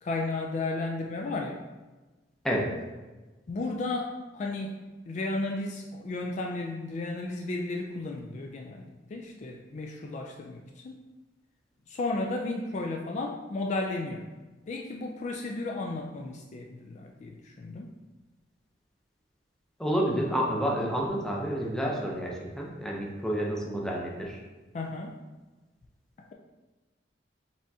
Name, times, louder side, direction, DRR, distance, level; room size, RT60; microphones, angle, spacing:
voice 1, 0.0-1.6 3.5-4.8 5.1-10.9 11.9-14.3 14.7-17.9 24.7-25.2 26.2-26.3, left 2 dB, 40° left, 1 dB, 0.3 m, -34 dB
voice 2, 19.8-24.4, equal, 5° left, -2 dB, 0.6 m, -29 dB
5.0 x 3.5 x 2.7 m, 1.2 s
head